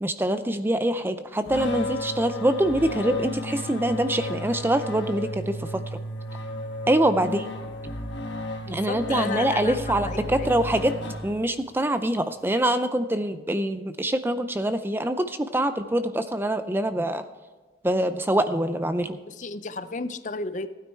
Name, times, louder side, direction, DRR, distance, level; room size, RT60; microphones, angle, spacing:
voice 1, 0.0-5.8 6.9-7.5 8.7-10.9 11.2-17.2 17.8-19.2, right 1 dB, 10° right, 10 dB, 0.5 m, -24 dB
sound 1, 1.5-11.7, left 1 dB, 70° left, 1.5 m, -33 dB
voice 2, 8.6-10.5 19.3-20.7, left 3 dB, 40° left, 12 dB, 0.6 m, -33 dB
15.5 x 9.4 x 4.5 m, 1.3 s
head